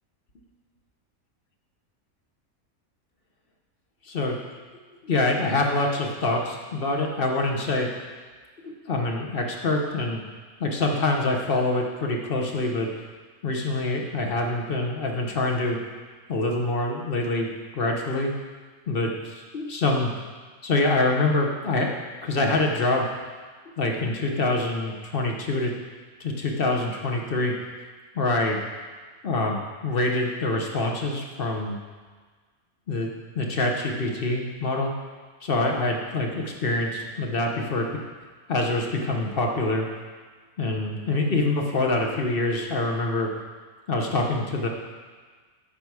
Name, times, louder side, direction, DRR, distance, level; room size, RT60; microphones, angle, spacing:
voice 1, 4.1-4.4 5.0-7.9 8.6-10.2 10.6-12.9 13.4-15.8 16.3-17.5 17.7-18.3 18.9-20.1 20.6-21.9 22.2-23.1 23.8-25.7 26.2-27.5 28.1-28.6 29.2-31.8 32.9-34.9 35.4-37.9 38.5-39.9 40.6-43.3 43.9-44.7, left 2 dB, 45° left, 1 dB, 1.0 m, -25 dB
9.1 x 5.8 x 4.8 m, 1.5 s
omnidirectional pair, 1.5 m